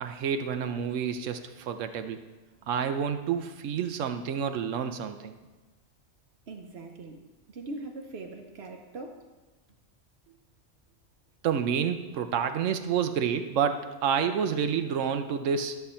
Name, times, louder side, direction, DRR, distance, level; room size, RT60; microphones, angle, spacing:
voice 1, 0.0-2.2 2.7-5.3 11.4-15.8, right 7 dB, 85° right, 8 dB, 1.0 m, -29 dB
voice 2, 6.5-9.3, right 2 dB, 60° right, 3 dB, 1.0 m, -41 dB
12.5 x 6.9 x 4.3 m, 1.2 s
omnidirectional pair, 1.3 m